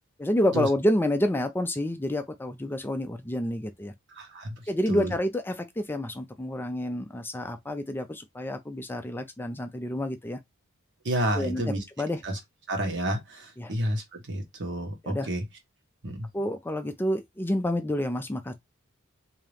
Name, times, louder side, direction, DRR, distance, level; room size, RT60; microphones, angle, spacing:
voice 1, 0.2-3.9 4.7-10.4 11.3-11.6 12.0-12.2 13.6-13.7 15.0-15.3 16.3-18.5, left 1 dB, 10° left, 0.4 m, -28 dB
voice 2, 4.2-4.5 4.9-5.2 11.0-11.8 12.2-12.4 12.7-15.4 16.0-16.3, right 1 dB, 55° right, 1.3 m, -30 dB
3.6 x 2.8 x 3.4 m
head